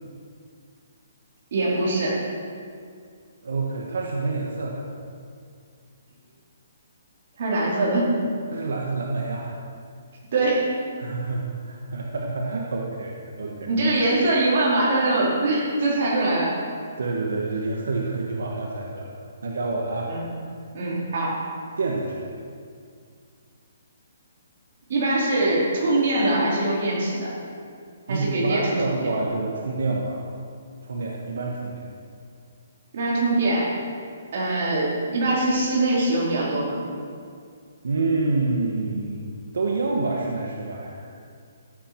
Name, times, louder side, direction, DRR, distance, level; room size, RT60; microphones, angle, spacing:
voice 1, 1.5-2.2 7.4-8.2 10.3-10.7 13.7-16.6 20.1-20.2 20.7-21.4 24.9-27.3 28.1-29.1 32.9-33.7 34.3-36.7, right 2 dB, 40° right, -5 dB, 4.4 m, -23 dB
voice 2, 3.4-4.9 8.5-9.6 11.0-13.7 17.0-20.1 21.8-22.2 28.1-30.3 30.8-31.9 37.8-41.1, right 3 dB, 80° right, -1 dB, 1.9 m, -28 dB
15.5 x 9.1 x 6.1 m, 2.2 s
hypercardioid pair, 175°, 0 cm